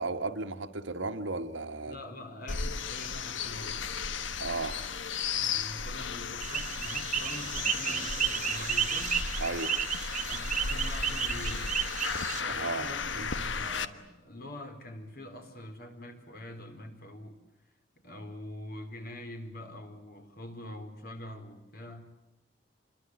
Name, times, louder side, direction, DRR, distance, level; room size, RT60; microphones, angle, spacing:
voice 1, 0.0-2.0 4.4-4.8 9.4-9.7 12.5-13.3, right 3 dB, 85° right, 1.8 m, -35 dB
voice 2, 1.8-3.8 5.3-9.3 10.3-11.7 12.4-17.4 18.0-22.0, left 1 dB, 55° left, 4.3 m, -44 dB
sound 1, 2.5-13.8, left 5 dB, 80° left, 1.3 m, -35 dB
sound 2, 6.4-12.4, right 8 dB, 40° right, 1.6 m, -32 dB
27.5 x 22.5 x 8.1 m
head